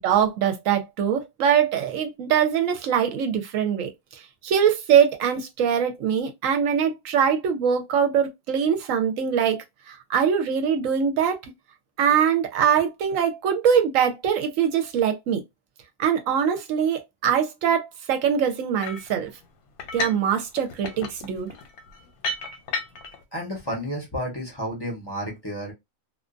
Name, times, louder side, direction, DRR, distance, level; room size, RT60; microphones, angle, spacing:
voice 1, 0.0-3.9 4.4-11.4 12.0-15.4 16.0-19.3 19.9-21.5, right 8 dB, 70° right, 0.9 m, -23 dB
sound 1, 18.8-19.1 19.8-20.3 20.6-23.2, left 2 dB, 85° left, 1.1 m, -32 dB
voice 2, 23.3-25.7, equal, 25° left, 0.6 m, -31 dB
2.4 x 2.3 x 2.5 m
omnidirectional pair, 1.5 m